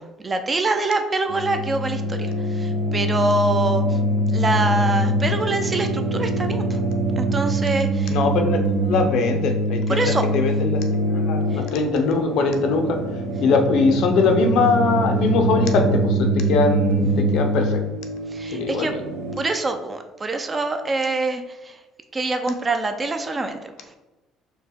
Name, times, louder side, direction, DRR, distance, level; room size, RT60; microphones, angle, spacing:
voice 1, 0.0-4.0 4.3-6.8 7.2-8.2 9.9-10.2 11.5-11.6 18.3-18.9 19.4-21.8 22.1-24.0, right 2 dB, 20° right, 7 dB, 0.3 m, -25 dB
sound 1, 1.3-19.4, right 1 dB, 85° right, 0.6 m, -23 dB
voice 2, 8.1-10.0 10.3-10.8 11.1-13.0 13.4-17.8 18.5-19.0, left 4 dB, 70° left, 5 dB, 0.5 m, -21 dB
4.4 x 2.2 x 3.5 m, 1.1 s
cardioid pair, 125°, 0 cm